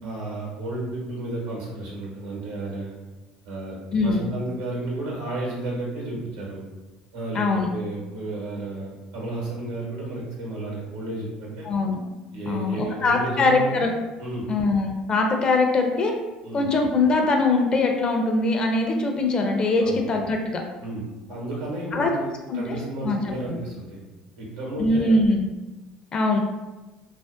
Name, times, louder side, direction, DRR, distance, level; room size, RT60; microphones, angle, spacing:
voice 1, 0.0-2.9 3.4-3.8 4.0-6.6 7.1-7.4 7.7-11.7 12.3-13.9 14.2-14.5 16.4-16.7 19.8-20.0 20.8-21.0 21.3-24.0 24.4-25.1, right 2 dB, 90° right, -3 dB, 0.9 m, -32 dB
voice 2, 3.9-4.3 7.3-7.7 11.6-12.0 12.5-13.9 14.5-16.1 16.5-20.6 21.9-22.1 22.5-22.6 23.0-23.2 23.5-23.6 24.8-25.5 26.1-26.4, left 3 dB, 40° left, 2 dB, 0.5 m, -22 dB
2.5 x 2.1 x 2.4 m, 1.1 s
supercardioid pair, 80°, 2 cm